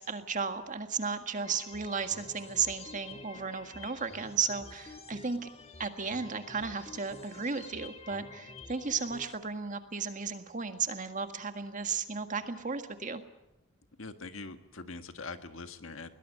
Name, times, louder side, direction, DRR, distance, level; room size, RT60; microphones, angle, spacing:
voice 1, 0.0-5.5 5.8-13.2, right 5 dB, 40° right, 7 dB, 1.8 m, -34 dB
sound 1, 1.4-9.4, left 3 dB, 30° left, 1.7 m, -49 dB
voice 2, 14.0-16.1, left 3 dB, 65° left, 8 dB, 1.7 m, -43 dB
21.5 x 20.0 x 9.4 m, 0.92 s
head